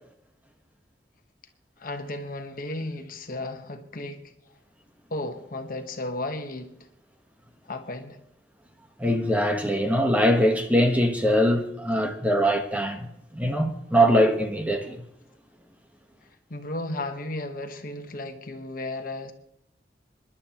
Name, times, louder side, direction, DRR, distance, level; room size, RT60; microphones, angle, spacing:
voice 1, 1.8-4.3 5.1-6.7 7.7-8.2 16.5-19.3, left 2 dB, 50° left, 1.2 m, -34 dB
voice 2, 9.0-13.1 13.3-15.0, equal, 10° right, 1.2 m, -22 dB
27.0 x 11.5 x 3.0 m
head